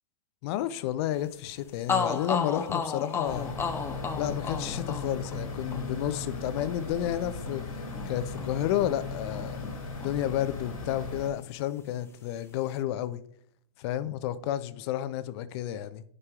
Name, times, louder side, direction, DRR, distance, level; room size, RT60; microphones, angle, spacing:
voice 1, 0.4-3.5 4.2-13.2 13.8-16.0, left 12 dB, 50° left, 0.6 m, -31 dB
sound 1, 1.5-1.6 1.9-9.8 10.0-11.2, left 5 dB, 15° left, 0.7 m, -35 dB
sound 2, 3.2-11.3, left 3 dB, 90° left, 2.1 m, -37 dB
9.8 x 5.4 x 2.4 m
hypercardioid pair, 115°, 17 cm